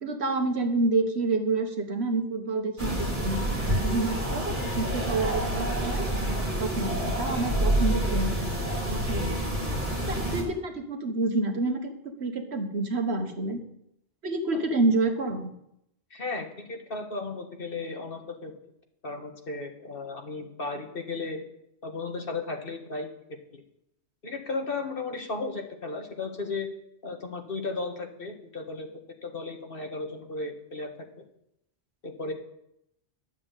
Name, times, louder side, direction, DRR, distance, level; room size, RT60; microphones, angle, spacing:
voice 1, 0.0-6.1 6.6-9.7 10.1-11.9 12.2-13.6 14.2-15.5, right 2 dB, 70° right, 5 dB, 1.6 m, -28 dB
sound 1, 2.8-10.4, right 1 dB, 45° right, 3.2 m, -28 dB
voice 2, 16.1-18.5 19.0-21.4 21.8-23.1 23.5-23.6 24.2-26.7 27.0-28.9 29.2-31.2 32.0-32.3, left 3 dB, 55° left, 4 dB, 1.7 m, -35 dB
11.0 x 7.3 x 8.2 m, 0.78 s
omnidirectional pair, 1.2 m